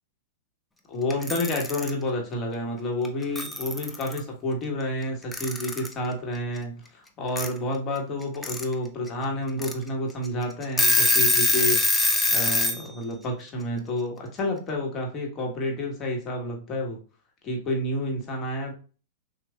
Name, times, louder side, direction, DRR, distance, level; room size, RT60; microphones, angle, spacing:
voice 1, 0.9-17.0 17.4-18.7, left 1 dB, 35° left, 1 dB, 1.4 m, -30 dB
Alarm / Clock, 1.1-1.9 3.0-3.1 3.4-4.2 5.3-5.9 7.4-7.5 8.2-8.6 9.1-9.2 9.6-9.7 10.3-10.4 10.6-12.8, left 3 dB, 5° left, 0.6 m, -23 dB
6.2 x 2.5 x 2.2 m, 0.37 s
hypercardioid pair, 115°, 0 cm